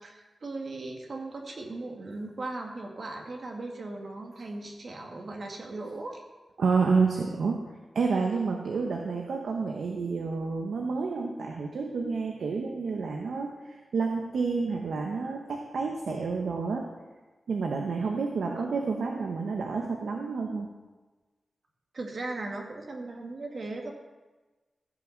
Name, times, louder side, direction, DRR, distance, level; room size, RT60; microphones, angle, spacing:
voice 1, 0.0-6.2 8.7-8.8 18.4-18.8 21.9-23.9, right 2 dB, 50° right, 2 dB, 1.8 m, -38 dB
voice 2, 6.6-7.6 7.9-16.9 17.5-20.7, right 4 dB, 90° right, 2 dB, 1.1 m, -29 dB
14.5 x 6.0 x 6.6 m, 1.2 s
wide cardioid pair, 120°, 0 cm